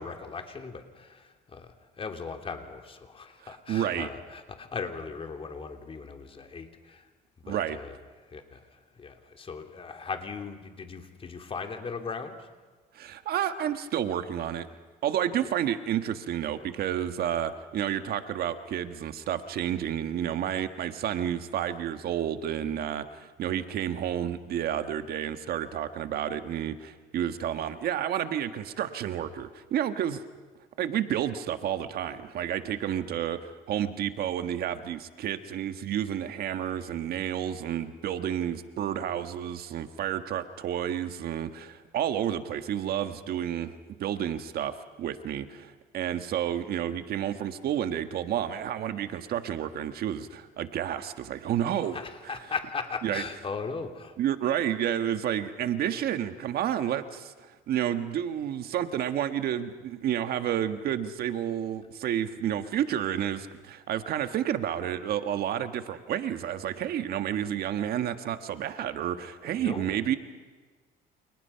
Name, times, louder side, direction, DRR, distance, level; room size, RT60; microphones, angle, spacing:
voice 1, 0.0-7.1 7.5-8.0 8.2-12.5 15.4-15.5 51.9-54.1 69.5-70.0, left 5 dB, 35° left, 5 dB, 3.2 m, -38 dB
voice 2, 3.4-4.1 7.4-7.8 12.9-14.7 15.0-30.2 30.8-52.0 52.2-52.4 53.0-53.2 54.2-70.2, right 10 dB, 65° right, 9 dB, 1.5 m, -30 dB
29.5 x 29.0 x 5.8 m, 1.4 s
cardioid pair, 110°, 17 cm